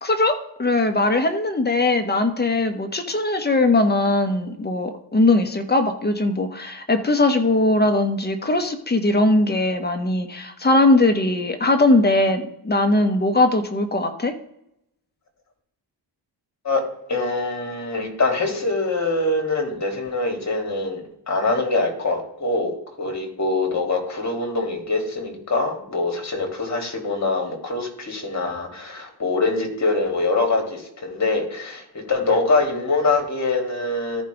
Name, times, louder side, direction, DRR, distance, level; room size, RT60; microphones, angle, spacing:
voice 1, 0.0-14.3, left 2 dB, 20° left, 6 dB, 1.2 m, -20 dB
voice 2, 17.1-34.2, left 3 dB, 40° left, 3 dB, 2.9 m, -24 dB
14.0 x 5.1 x 3.5 m, 0.76 s
cardioid pair, 95°, 43 cm